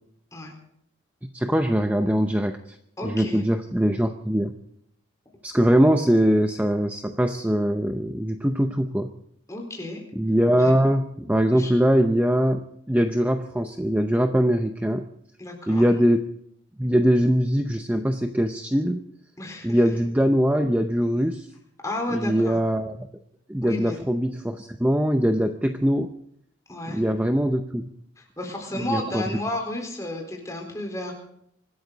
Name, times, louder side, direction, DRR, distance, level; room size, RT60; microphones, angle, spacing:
voice 1, 1.2-2.8 3.0-4.5 5.4-9.1 10.2-15.1 15.7-16.2 16.8-19.0 19.6-21.5 22.1-23.1 23.5-26.1 26.9-27.9 28.8-29.2, equal, 10° right, 6 dB, 0.6 m, -22 dB
voice 2, 3.0-3.4 9.5-10.0 10.5-10.7 11.6-11.7 15.4-15.8 19.4-19.8 21.8-22.6 23.6-24.0 26.7-27.0 28.2-31.1, left 1 dB, 15° left, 1 dB, 4.0 m, -32 dB
25.0 x 13.0 x 4.0 m, 0.71 s
head